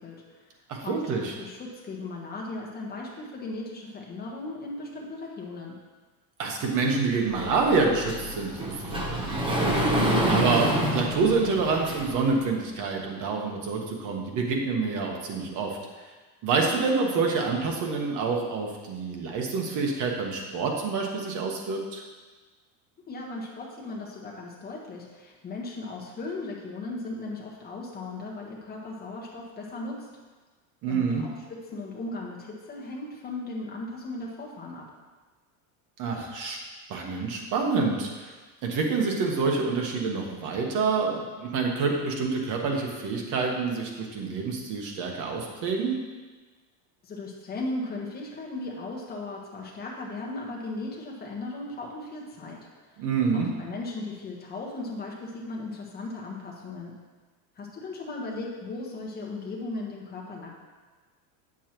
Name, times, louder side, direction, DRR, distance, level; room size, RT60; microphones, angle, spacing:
voice 1, 0.0-0.5 0.8-5.8 23.1-30.1 30.9-34.9 47.0-52.7 52.9-53.0 53.3-57.0 57.5-60.5, left 2 dB, 20° left, -2 dB, 1.3 m, -37 dB
voice 2, 0.7-1.3 6.4-9.6 10.3-15.8 16.4-22.0 30.8-31.2 36.0-36.6 36.9-38.3 38.6-46.0 53.0-53.5, right 4 dB, 40° right, 1 dB, 1.3 m, -27 dB
Sliding door, 7.3-12.3, equal, 10° right, 0.8 m, -27 dB
8.2 x 7.3 x 3.0 m, 1.3 s
cardioid pair, 155°, 45 cm